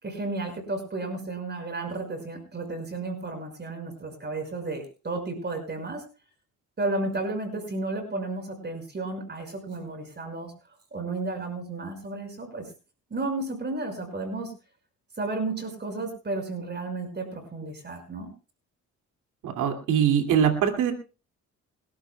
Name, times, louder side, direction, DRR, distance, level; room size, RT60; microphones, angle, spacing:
voice 1, 0.0-6.0 6.8-10.5 10.9-12.7 13.1-14.5 15.2-18.3, right 2 dB, 35° right, 5 dB, 5.6 m, -33 dB
voice 2, 19.4-20.9, right 8 dB, 90° right, 4 dB, 2.4 m, -22 dB
28.0 x 12.5 x 2.3 m, 0.34 s
cardioid pair, 90°, 30 cm